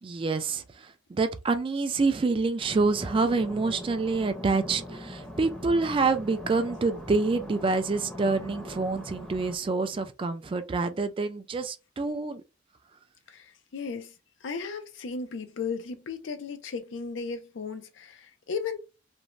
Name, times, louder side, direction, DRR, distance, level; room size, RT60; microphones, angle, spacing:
voice 1, 0.0-12.4, right 3 dB, 30° right, 0.3 m, -27 dB
sound 1, 2.6-9.6, equal, 5° left, 0.6 m, -41 dB
voice 2, 13.3-14.1 14.4-18.8, left 5 dB, 80° left, 0.5 m, -35 dB
2.6 x 2.1 x 3.0 m
head